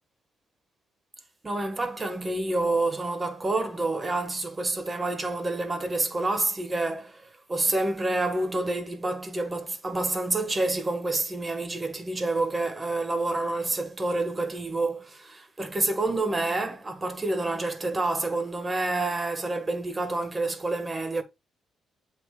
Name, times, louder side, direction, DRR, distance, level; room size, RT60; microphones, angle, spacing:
voice 1, 1.4-21.2, right 2 dB, 25° right, 1.6 m, -28 dB
7.9 x 3.0 x 4.8 m
cardioid pair, 90°, 0 cm